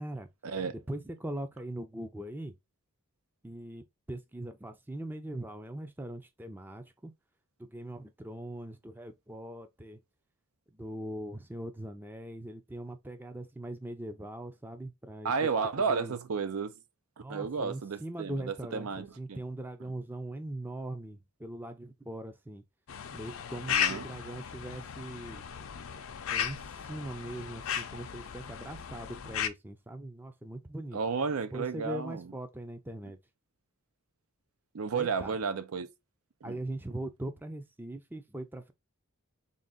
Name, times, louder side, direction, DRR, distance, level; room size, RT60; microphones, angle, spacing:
voice 1, 0.7-2.5 3.4-7.1 7.6-10.0 10.7-15.3 15.9-16.2 17.2-22.6 23.1-25.4 26.3-31.0 31.5-33.2 34.9-35.3 36.4-38.7, right 1 dB, 10° right, 0.4 m, -41 dB
voice 2, 15.2-16.8 17.3-19.4 23.7-24.1 30.9-32.3 34.7-35.9 36.4-36.6, right 5 dB, 80° right, 0.5 m, -32 dB
sound 1, 22.9-29.5, left 9 dB, 65° left, 0.5 m, -35 dB
3.8 x 2.4 x 3.7 m
head